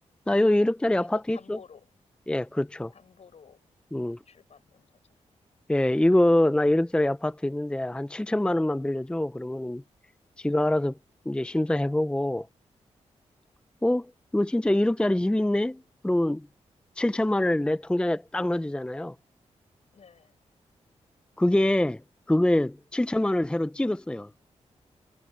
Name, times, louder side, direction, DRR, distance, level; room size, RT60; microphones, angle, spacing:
voice 1, 0.3-1.4 2.3-2.9 3.9-4.2 5.7-9.8 10.4-10.9 11.3-12.5 13.8-14.1 14.3-16.5 17.0-19.1 21.4-22.0 22.3-24.3, left 1 dB, 10° left, 0.6 m, -24 dB
voice 2, 1.0-1.9 2.9-3.7 4.1-5.0 19.9-20.4 23.1-23.3, left 6 dB, 65° left, 7.1 m, -53 dB
cardioid pair, 75°, 12 cm